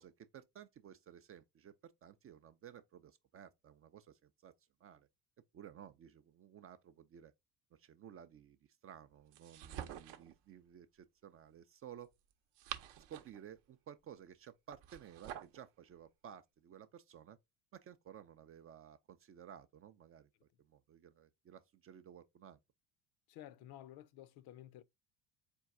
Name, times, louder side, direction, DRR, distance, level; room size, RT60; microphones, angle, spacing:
voice 1, 0.0-4.5 4.8-5.1 5.5-7.3 7.7-8.6 8.8-12.1 13.1-17.4 17.7-20.3 20.6-22.6, right 9 dB, 30° right, 0.4 m, -55 dB
sound 1, 9.3-10.3 12.3-13.4 14.7-15.6, right 10 dB, 65° right, 0.8 m, -47 dB
voice 2, 23.3-24.8, left 13 dB, 55° left, 0.6 m, -53 dB
4.5 x 2.2 x 3.6 m
hypercardioid pair, 75°, 46 cm